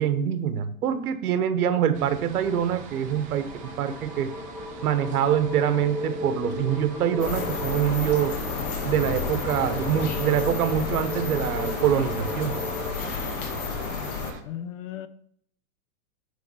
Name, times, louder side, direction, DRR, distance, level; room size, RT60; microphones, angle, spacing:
voice 1, 0.0-4.3 4.8-8.4 8.8-12.6, right 9 dB, 80° right, 1.1 m, -25 dB
sound 1, 1.9-14.4, right 7 dB, 20° right, 0.5 m, -44 dB
sound 2, 2.3-13.0, left 2 dB, 5° left, 1.3 m, -37 dB
sound 3, 7.2-14.3, left 5 dB, 80° left, 2.0 m, -31 dB
voice 2, 14.4-15.1, left 10 dB, 60° left, 0.8 m, -35 dB
9.5 x 3.5 x 5.4 m
supercardioid pair, 150°, 44 cm